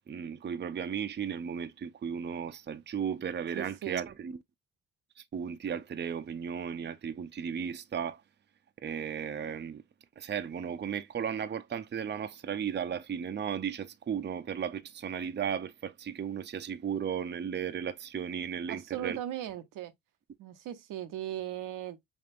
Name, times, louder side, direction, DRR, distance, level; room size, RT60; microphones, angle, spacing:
voice 1, 0.1-4.4 5.3-8.2 8.8-9.8 10.2-19.2, right 7 dB, 35° right, 0.6 m, -35 dB
voice 2, 3.5-4.0 18.7-19.9 20.4-22.1, right 12 dB, 75° right, 0.7 m, -38 dB
4.2 x 3.4 x 2.4 m
supercardioid pair, 50°, 33 cm